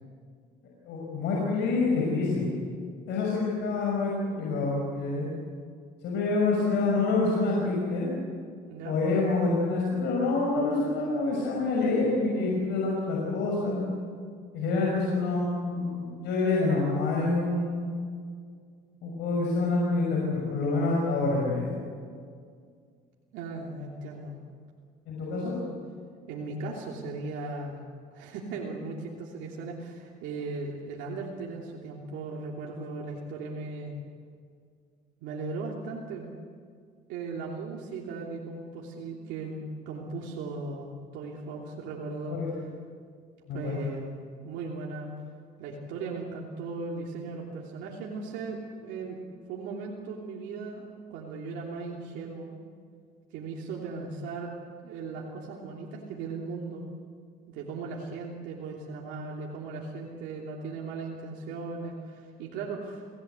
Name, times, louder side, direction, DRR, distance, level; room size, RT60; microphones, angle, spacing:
voice 1, 0.8-2.5 3.1-5.3 6.0-8.1 8.8-13.8 14.5-17.9 19.0-21.7 25.1-25.5 42.3-42.5 43.5-43.8, left 3 dB, 75° left, -3 dB, 6.0 m, -27 dB
voice 2, 8.7-9.0 23.3-24.3 26.3-27.8 28.1-33.9 35.2-36.3 37.1-42.4 43.5-45.1 45.6-49.2 49.5-52.6 53.3-54.5 54.8-56.9 57.5-63.1, right 3 dB, 85° right, -2 dB, 3.1 m, -37 dB
28.5 x 18.5 x 8.2 m, 2.1 s
cardioid pair, 90°, 18 cm